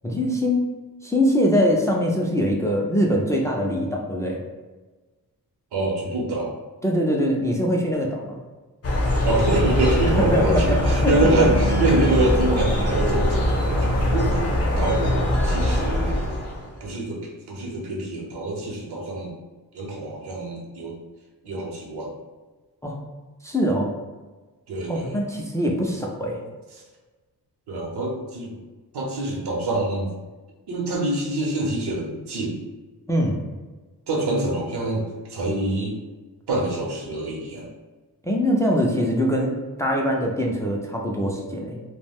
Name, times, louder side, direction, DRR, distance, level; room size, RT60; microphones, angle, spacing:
voice 1, 0.0-0.7 1.0-4.4 6.8-8.4 10.2-11.1 11.4-11.5 22.8-23.0 23.4-23.9 24.9-26.4 33.1-33.4 38.2-39.5 39.8-41.8, equal, 10° left, -1 dB, 0.3 m, -22 dB
voice 2, 5.7-6.5 9.2-14.5 14.8-16.2 16.8-17.2 17.5-19.3 19.7-21.0 21.4-22.1 24.7-25.1 27.7-28.5 28.9-30.1 30.7-32.6 34.1-35.0 35.3-35.9 36.5-37.7, right 2 dB, 80° right, -2 dB, 0.7 m, -25 dB
sound 1, 8.8-16.8, left 1 dB, 40° left, 0.7 m, -22 dB
2.4 x 2.1 x 3.4 m, 1.3 s
wide cardioid pair, 100°, 39 cm